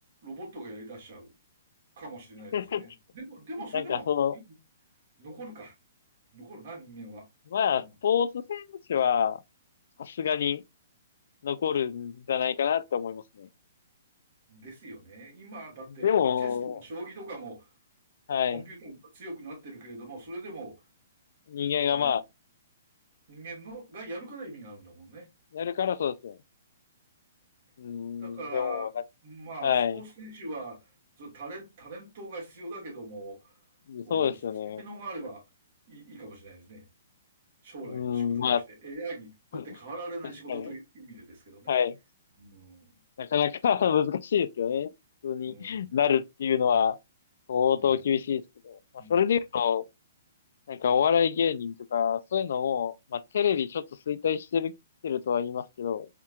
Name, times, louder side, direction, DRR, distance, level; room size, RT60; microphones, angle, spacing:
voice 1, 0.2-1.3 2.0-4.1 4.3-4.5 5.2-5.7 6.3-7.3 7.7-7.9 14.5-16.1 16.4-17.7 18.5-20.8 21.9-22.2 23.3-25.3 28.2-28.9 29.2-30.9 31.2-33.6 34.0-34.4 34.7-35.4 35.9-36.9 37.6-41.7 42.4-43.0 45.4-46.0 47.7-48.0 49.0-49.3, right 2 dB, 55° right, 2.4 m, -42 dB
voice 2, 2.5-2.8 3.7-4.4 7.5-8.6 8.9-9.4 10.0-10.6 11.4-13.5 16.0-16.8 18.3-18.6 21.5-22.2 25.5-26.4 27.8-29.0 29.6-30.0 33.9-34.8 37.9-38.6 39.5-39.6 40.5-40.7 41.7-42.0 43.2-44.9 45.2-47.0 47.5-48.8 49.1-49.8 50.7-54.7 55.0-56.1, left 8 dB, 65° left, 0.4 m, -27 dB
4.4 x 3.5 x 2.3 m
hypercardioid pair, 140°, 0 cm